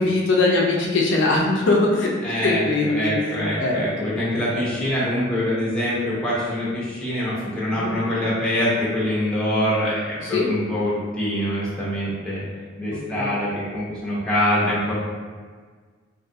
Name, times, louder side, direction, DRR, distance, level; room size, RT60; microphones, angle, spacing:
voice 1, 0.0-2.1 2.4-3.1 3.6-4.1 7.8-8.0 10.2-10.5 12.9-13.3, left 2 dB, 65° left, -2 dB, 0.4 m, -21 dB
voice 2, 2.2-12.4 12.8-14.9, left 1 dB, 5° left, -8 dB, 0.8 m, -24 dB
2.6 x 2.4 x 2.6 m, 1.5 s
head